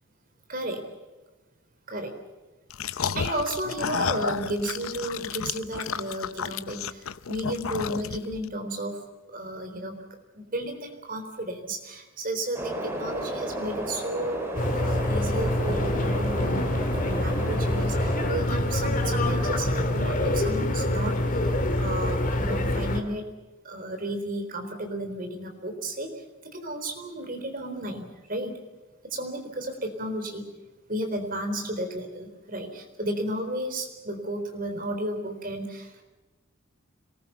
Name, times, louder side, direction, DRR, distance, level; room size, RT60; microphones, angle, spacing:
voice 1, 0.5-0.9 1.9-2.1 3.1-9.0 9.3-10.0 10.3-14.5 14.7-23.3 23.6-26.1 26.5-28.6 29.0-30.5 30.9-36.0, right 1 dB, 45° right, 5 dB, 4.1 m, -33 dB
sound 1, 2.7-8.4, left 6 dB, 85° left, 0.7 m, -32 dB
sound 2, 12.5-18.3, right 1 dB, 10° right, 5.2 m, -34 dB
sound 3, 14.6-23.0, left 1 dB, 40° left, 2.7 m, -26 dB
26.5 x 20.0 x 7.0 m, 1.2 s
head